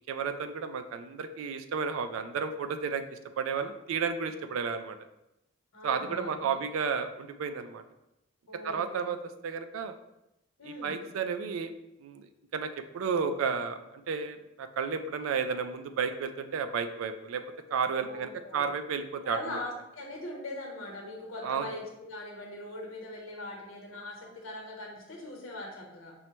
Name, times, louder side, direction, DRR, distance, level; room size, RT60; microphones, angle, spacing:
voice 1, 0.1-5.0 5.8-7.8 8.6-9.2 9.4-9.9 10.6-11.7 12.0-17.4 17.7-19.6 21.4-21.7, right 6 dB, 80° right, 9 dB, 0.3 m, -32 dB
voice 2, 5.7-6.6 8.5-9.1 10.6-11.0 18.0-18.7 19.2-26.1, left 1 dB, 75° left, 0 dB, 1.0 m, -41 dB
5.3 x 2.1 x 3.0 m, 0.88 s
head